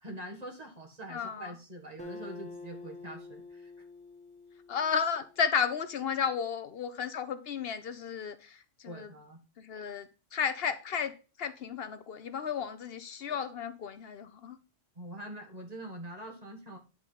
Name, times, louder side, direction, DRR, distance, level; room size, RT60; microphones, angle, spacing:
voice 1, 0.0-3.7 8.9-9.4 15.0-16.8, right 1 dB, 35° right, 1.9 m, -44 dB
voice 2, 1.1-1.5 4.7-9.1 9.6-11.1 11.4-14.6, left 7 dB, 65° left, 0.8 m, -33 dB
Acoustic guitar, 2.0-5.6, left 3 dB, 5° left, 1.2 m, -47 dB
9.7 x 3.8 x 5.6 m
omnidirectional pair, 1.1 m